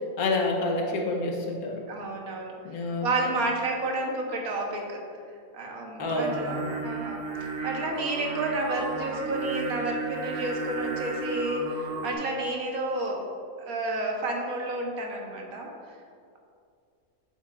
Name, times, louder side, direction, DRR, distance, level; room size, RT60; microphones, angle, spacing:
voice 1, 0.2-1.8 2.6-3.1 6.0-6.6, left 2 dB, 80° left, 1 dB, 1.4 m, -28 dB
voice 2, 1.9-2.6 3.0-5.0 5.5-13.2 13.6-15.7, right 2 dB, 80° right, 0 dB, 1.5 m, -31 dB
Singing, 6.0-12.1, right 4 dB, 50° right, 1.0 m, -34 dB
7.8 x 7.4 x 2.4 m, 2.3 s
omnidirectional pair, 1.5 m